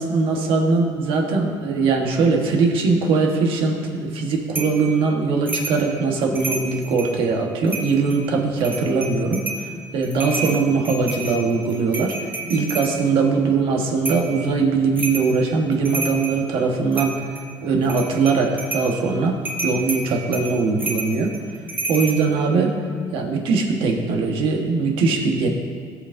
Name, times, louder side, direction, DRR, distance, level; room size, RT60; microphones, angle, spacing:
voice 1, 0.0-17.2 17.6-21.3 21.9-22.7 23.1-25.5, right 4 dB, 70° right, 1 dB, 1.5 m, -21 dB
sound 1, 4.5-4.8 5.5-5.8 6.2-7.2 7.7-8.2 8.6-9.7 10.0-12.9 14.0-14.3 15.0-15.3 15.7-16.4 16.9-17.5 17.8-18.9 19.4-22.2, right 2 dB, 20° right, 1.3 m, -30 dB
18.5 x 6.4 x 2.7 m, 2.1 s
cardioid pair, 140°, 9 cm